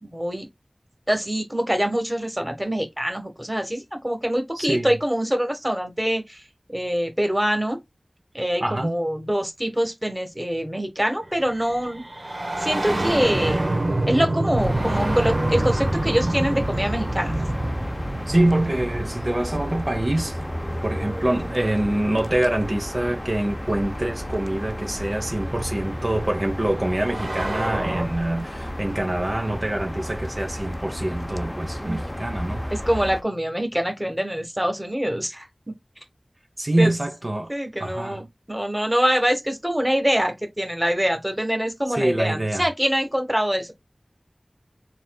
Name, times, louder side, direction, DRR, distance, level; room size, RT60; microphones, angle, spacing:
voice 1, 0.0-0.5 1.1-6.4 6.7-7.8 8.3-12.0 12.6-13.6 14.1-17.5 31.8-32.1 32.5-35.7 36.8-36.9 37.5-43.7, equal, 10° right, 1.3 m, -24 dB
voice 2, 4.6-4.9 8.6-9.0 18.3-20.4 20.8-32.7 36.6-37.5 37.8-38.2 41.9-42.7, right 1 dB, 50° right, 0.9 m, -25 dB
sound 1, 11.3-21.9 23.2-23.3 24.3-28.1, right 1 dB, 65° right, 1.1 m, -28 dB
sound 2, 14.6-33.2, equal, 20° left, 0.6 m, -32 dB
4.1 x 3.9 x 2.3 m
wide cardioid pair, 40°, 0 cm